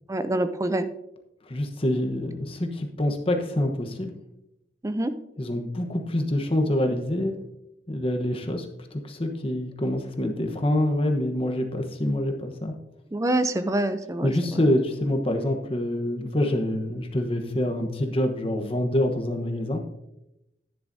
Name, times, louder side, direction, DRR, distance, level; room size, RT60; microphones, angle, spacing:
voice 1, 0.1-0.9 4.8-5.1 13.1-14.3, right 1 dB, 20° right, 11 dB, 0.5 m, -25 dB
voice 2, 1.5-4.2 5.4-7.3 7.9-8.7 8.9-12.7 14.2-19.8, left 1 dB, 30° left, 4 dB, 1.1 m, -26 dB
10.5 x 10.5 x 2.7 m, 0.88 s
head